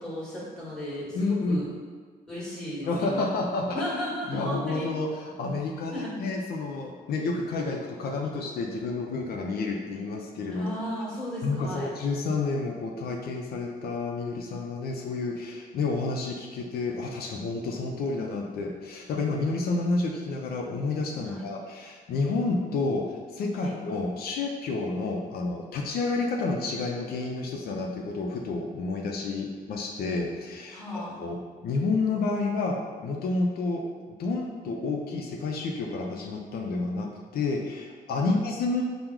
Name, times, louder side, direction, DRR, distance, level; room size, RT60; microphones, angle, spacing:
voice 1, 0.0-1.7 2.3-3.3 3.7-4.9 5.9-6.1 10.5-11.9 21.2-21.4 23.5-23.7 30.7-31.2 38.1-38.5, equal, 5° left, -9 dB, 1.2 m, -35 dB
voice 2, 1.1-1.6 2.8-3.9 4.3-10.7 11.4-31.4 31.6-33.8 34.1-37.1 37.3-38.8, left 3 dB, 75° left, 1 dB, 0.5 m, -30 dB
4.5 x 2.0 x 3.6 m, 1.5 s
wide cardioid pair, 155°, 16 cm